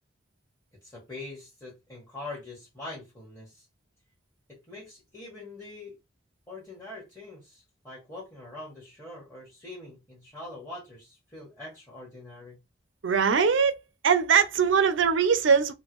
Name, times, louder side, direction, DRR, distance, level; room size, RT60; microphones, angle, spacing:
voice 1, 0.8-3.7 4.5-5.9 6.5-12.6, left 2 dB, 15° left, 1.3 m, -43 dB
voice 2, 13.0-13.7 14.0-15.7, right 6 dB, 70° right, 0.5 m, -21 dB
3.6 x 2.2 x 3.0 m
head